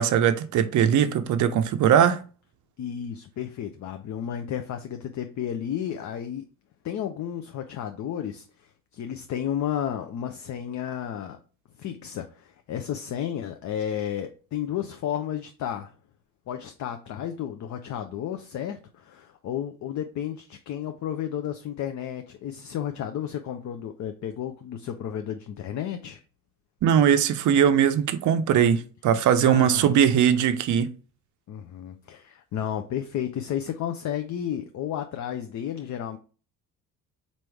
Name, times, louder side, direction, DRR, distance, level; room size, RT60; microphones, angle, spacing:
voice 1, 0.0-2.2 26.8-30.9, right 9 dB, 40° right, 0.6 m, -20 dB
voice 2, 2.8-6.4 6.8-11.4 11.8-15.9 16.5-26.2 29.4-30.2 31.5-36.2, left 9 dB, 40° left, 0.5 m, -32 dB
4.0 x 3.1 x 3.4 m
hypercardioid pair, 50°, 46 cm